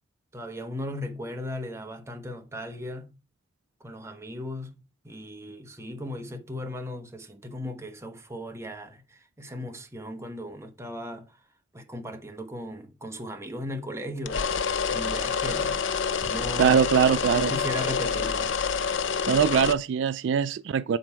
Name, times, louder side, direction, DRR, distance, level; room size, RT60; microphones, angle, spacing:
voice 1, 0.3-3.1 3.8-11.4 11.7-14.4 14.9-15.8 16.2-16.8 17.3-18.6, left 1 dB, 15° right, 1.1 m, -37 dB
sound 1, 14.3-19.7, left 6 dB, 75° left, 0.6 m, -27 dB
voice 2, 16.6-17.5 19.3-21.0, right 7 dB, 70° right, 0.3 m, -22 dB
7.7 x 4.2 x 4.6 m
head